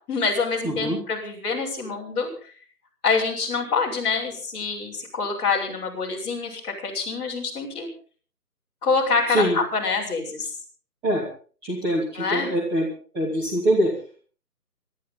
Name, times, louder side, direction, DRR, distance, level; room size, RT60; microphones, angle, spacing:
voice 1, 0.1-2.3 3.0-7.9 8.8-10.5 12.1-12.5, left 4 dB, 10° left, -6 dB, 5.7 m, -26 dB
voice 2, 0.6-1.0 9.3-9.6 11.0-11.2 11.6-12.9 13.1-13.9, right 1 dB, 10° right, -6 dB, 3.0 m, -23 dB
25.5 x 13.5 x 4.0 m, 0.42 s
figure-of-eight pair, 160°, 48 cm